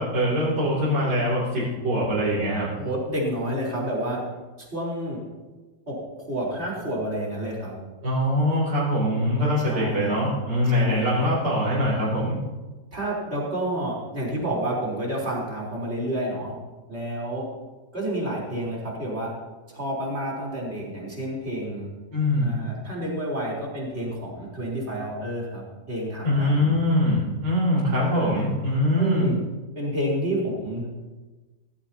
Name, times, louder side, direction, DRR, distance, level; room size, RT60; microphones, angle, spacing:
voice 1, 0.0-2.7 8.0-12.4 22.1-22.5 26.2-29.2, left 1 dB, 60° right, -8 dB, 3.9 m, -23 dB
voice 2, 2.7-4.2 4.6-5.2 5.9-7.7 9.7-10.3 10.7-11.0 12.9-16.6 16.9-17.5 17.9-19.3 19.7-21.9 22.4-26.7 28.0-28.4 29.0-29.4 29.8-30.9, right 1 dB, 35° right, -4 dB, 4.1 m, -29 dB
16.5 x 14.5 x 2.9 m, 1.3 s
omnidirectional pair, 2.0 m